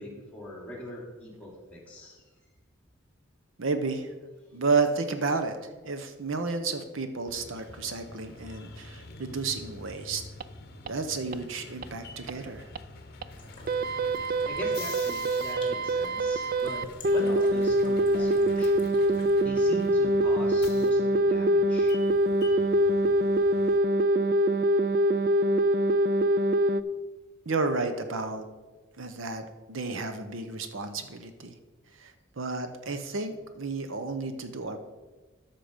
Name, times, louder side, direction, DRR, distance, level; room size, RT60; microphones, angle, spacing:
voice 1, 0.0-2.2 7.5-7.8 14.3-18.9 19.4-22.0, equal, 5° left, -3 dB, 2.6 m, -42 dB
voice 2, 3.6-4.1 4.5-10.2 10.8-12.7 27.5-28.4 29.0-31.5 32.0-34.9, right 4 dB, 75° right, 8 dB, 0.8 m, -31 dB
sound 1, 7.3-23.8, left 3 dB, 50° left, 0.9 m, -47 dB
sound 2, 10.4-10.5 10.9-11.0 11.3-11.4 11.8-11.9 12.3-12.4 12.8-12.9 13.2-13.3 13.7-26.8, right 1 dB, 45° right, 0.3 m, -24 dB
sound 3, 13.3-19.4, left 3 dB, 25° left, 1.8 m, -51 dB
13.0 x 5.9 x 5.1 m, 1.2 s
head